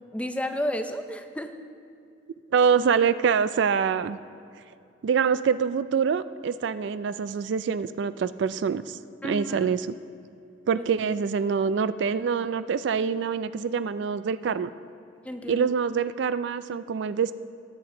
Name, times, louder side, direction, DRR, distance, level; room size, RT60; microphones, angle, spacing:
voice 1, 0.0-1.5 9.2-9.7 10.8-10.9 15.2-15.7, equal, 5° left, 7 dB, 0.5 m, -32 dB
voice 2, 2.5-4.2 5.0-9.9 10.7-14.7 15.5-17.3, right 6 dB, 60° right, 14 dB, 0.3 m, -25 dB
19.0 x 7.9 x 3.7 m, 2.6 s
head